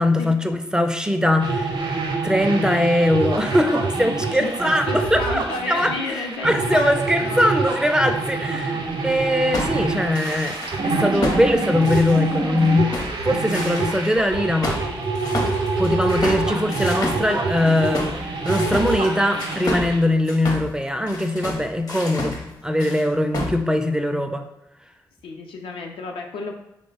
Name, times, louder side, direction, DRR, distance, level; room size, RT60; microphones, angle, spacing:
voice 1, 0.0-1.8 2.2-5.9 6.4-8.7 9.0-12.9 13.2-14.8 15.8-24.5, left 1 dB, 10° right, 7 dB, 0.3 m, -21 dB
sound 1, 1.4-20.0, right 3 dB, 65° right, 0.6 m, -26 dB
voice 2, 4.3-7.4 8.7-9.3 11.3-11.4 25.2-26.5, left 3 dB, 80° left, 2 dB, 0.4 m, -32 dB
sound 2, 9.1-10.8 11.2-12.6 12.9-14.1 14.6-22.5 22.8-23.0 23.3-23.5, left 1 dB, 45° left, 0.7 m, -30 dB
3.2 x 2.0 x 3.8 m, 0.87 s
supercardioid pair, 50°, 9 cm